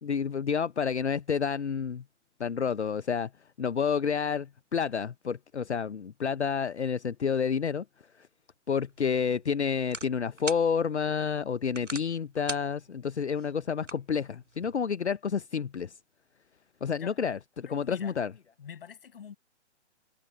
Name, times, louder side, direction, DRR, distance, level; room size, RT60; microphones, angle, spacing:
voice 1, 0.0-2.0 2.4-3.3 3.6-7.8 8.7-15.9 16.8-18.3, left 6 dB, 70° left, 0.8 m, -29 dB
sound 1, 8.7-14.7, right 2 dB, 85° right, 2.1 m, -44 dB
voice 2, 17.6-18.2 18.6-19.4, left 8 dB, 50° left, 7.2 m, -46 dB
figure-of-eight pair, 125°, 36 cm